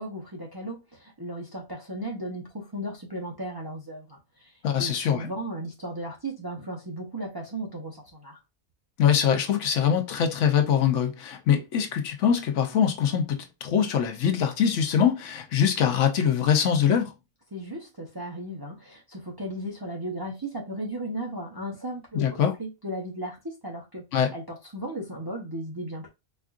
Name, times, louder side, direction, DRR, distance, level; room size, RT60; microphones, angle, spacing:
voice 1, 0.0-4.5 4.8-8.4 17.5-24.0 24.3-26.1, right 1 dB, 25° right, 0.5 m, -36 dB
voice 2, 4.6-5.3 9.0-17.1 22.1-22.5 24.1-24.3, left 8 dB, 70° left, 0.9 m, -23 dB
4.3 x 2.4 x 2.4 m
omnidirectional pair, 1.3 m